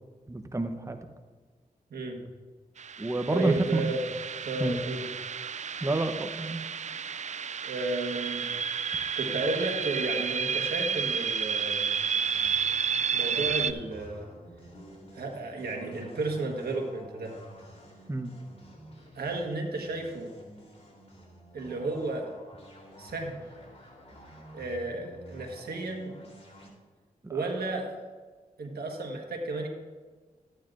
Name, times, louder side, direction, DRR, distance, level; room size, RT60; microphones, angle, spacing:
voice 1, 0.3-1.0 3.0-3.8 4.6-4.8 5.8-6.6 18.1-18.3 27.2-27.4, right 2 dB, 20° right, 6 dB, 0.8 m, -29 dB
voice 2, 1.9-2.2 3.3-4.0 4.4-5.0 7.6-8.5 9.1-11.9 13.1-14.3 15.1-17.3 19.1-20.3 21.5-22.3 23.0-23.4 24.5-26.2 27.3-28.0 28.6-29.7, right 2 dB, 85° right, 1 dB, 1.4 m, -33 dB
sound 1, 2.8-13.7, right 6 dB, 50° right, 0.4 m, -31 dB
sound 2, 11.4-26.7, equal, 40° left, 3.4 m, -50 dB
13.5 x 9.4 x 2.5 m, 1.4 s
cardioid pair, 50°, 16 cm